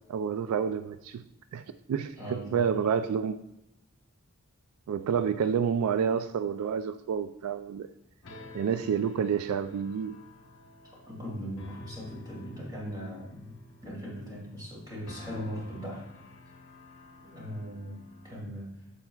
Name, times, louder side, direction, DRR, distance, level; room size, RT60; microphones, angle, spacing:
voice 1, 0.1-1.2 1.5-1.6 1.9-3.4 4.9-7.9 8.5-10.2, right 7 dB, 80° right, 0.3 m, -29 dB
voice 2, 2.2-2.7 11.1-16.1 17.2-18.0 18.2-18.7, equal, 15° right, 2.5 m, -39 dB
sound 1, 8.2-18.4, left 2 dB, 55° left, 0.9 m, -51 dB
8.8 x 6.9 x 2.3 m
head